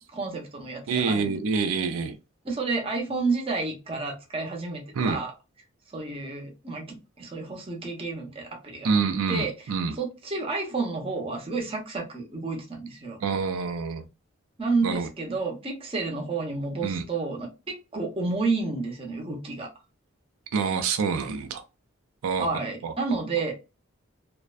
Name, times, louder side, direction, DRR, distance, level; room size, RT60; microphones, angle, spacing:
voice 1, 0.1-1.4 2.4-5.3 5.9-8.9 9.3-13.2 14.6-19.7 22.4-23.5, right 3 dB, 25° right, 0.7 m, -30 dB
voice 2, 0.9-2.2 5.0-5.2 8.8-9.9 13.2-14.0 14.8-15.1 16.8-17.0 20.5-21.6 22.2-22.5 22.8-22.9 23.4-23.5, right 5 dB, 85° right, 0.4 m, -27 dB
2.5 x 2.1 x 2.4 m
head